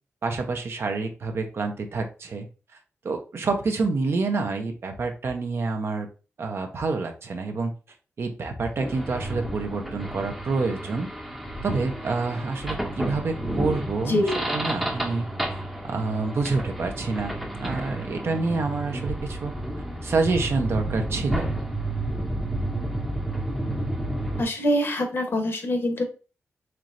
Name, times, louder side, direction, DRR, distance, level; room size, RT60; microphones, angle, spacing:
voice 1, 0.2-2.5 3.0-6.1 6.4-7.7 8.2-11.1 11.6-17.3 17.6-19.5 20.0-21.5, right 3 dB, 55° right, 5 dB, 0.7 m, -28 dB
sound 1, 8.8-24.4, right 1 dB, 5° right, 0.7 m, -31 dB
voice 2, 14.0-14.4 24.4-26.0, left 1 dB, 50° left, 5 dB, 0.9 m, -24 dB
4.4 x 3.1 x 2.5 m, 0.34 s
wide cardioid pair, 100°, 5 cm